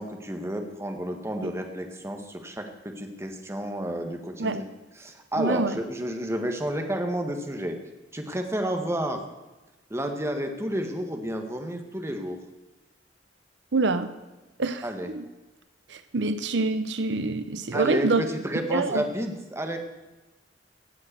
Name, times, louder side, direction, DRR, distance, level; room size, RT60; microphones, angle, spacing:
voice 1, 0.0-4.6 5.0-7.8 8.1-9.3 9.9-12.4 14.8-15.1 17.7-19.8, right 1 dB, 15° right, 4 dB, 1.6 m, -31 dB
voice 2, 5.4-5.8 13.7-14.1 14.6-14.8 15.1-15.3 15.9-18.3 18.7-19.0, right 3 dB, 80° right, 11 dB, 0.8 m, -26 dB
16.5 x 7.8 x 6.8 m, 1.1 s
head